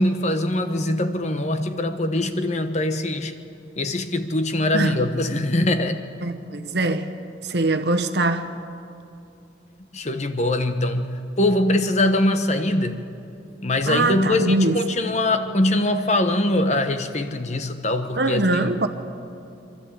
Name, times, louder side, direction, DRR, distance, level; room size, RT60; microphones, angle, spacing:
voice 1, 0.0-3.3 3.8-6.0 9.9-13.0 13.6-18.4, left 1 dB, 40° left, 1.0 m, -22 dB
voice 2, 6.2-7.2 7.4-8.5 13.9-14.8 18.2-18.9, right 2 dB, 60° right, 1.1 m, -22 dB
25.0 x 12.5 x 8.5 m
head